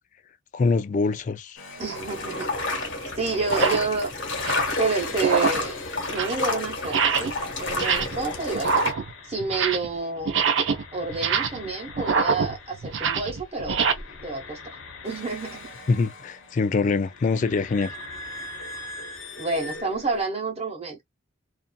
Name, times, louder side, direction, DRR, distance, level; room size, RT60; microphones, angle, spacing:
voice 1, 0.5-1.6 15.9-17.9, left 4 dB, 40° left, 0.3 m, -24 dB
sound 1, 1.6-10.2 10.5-20.2, left 3 dB, 85° left, 1.0 m, -42 dB
voice 2, 1.8-2.5 3.2-4.1 4.8-5.8 6.1-7.3 7.6-8.7 9.2-10.4 10.9-13.8 14.2-14.6 15.0-15.7 19.4-21.0, right 3 dB, 30° right, 1.0 m, -29 dB
sound 2, 1.8-2.0 2.8-2.9 3.4-3.9 4.3-4.7 5.1-5.7 6.0-6.4 6.8-7.4 7.7-8.3 8.5-10.0 10.2-13.9, right 6 dB, 65° right, 0.5 m, -25 dB
sound 3, 1.9-8.9, left 2 dB, 65° left, 1.2 m, -30 dB
2.6 x 2.5 x 2.2 m
head